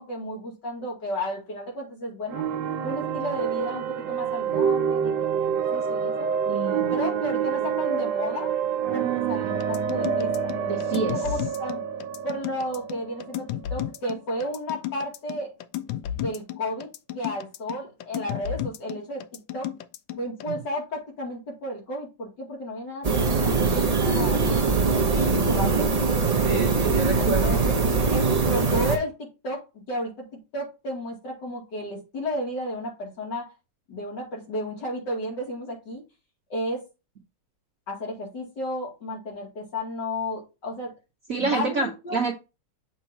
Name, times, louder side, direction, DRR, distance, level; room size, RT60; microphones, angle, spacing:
voice 1, 0.0-2.4 2.8-6.3 6.9-8.5 8.9-10.3 10.6-11.8 12.2-13.4 13.7-15.5 16.2-16.9 17.1-19.2 19.5-19.7 20.2-25.9 27.2-27.8 28.1-30.3 30.5-33.5 33.9-36.0 36.5-36.8 37.9-40.9 41.4-42.2, equal, 65° left, -1 dB, 3.1 m, -33 dB
sound 1, 2.3-14.0, right 7 dB, 75° right, 1.3 m, -27 dB
voice 2, 6.5-6.9 10.7-11.1 20.5-20.6 26.4-27.6 27.9-28.0 41.3-42.3, right 4 dB, 55° right, 1 dB, 1.2 m, -28 dB
sound 2, 9.6-20.5, left 12 dB, 80° left, 1.3 m, -33 dB
sound 3, 23.0-29.0, right 4 dB, 30° right, 0.7 m, -22 dB
7.1 x 3.0 x 5.6 m, 0.27 s
omnidirectional pair, 2.0 m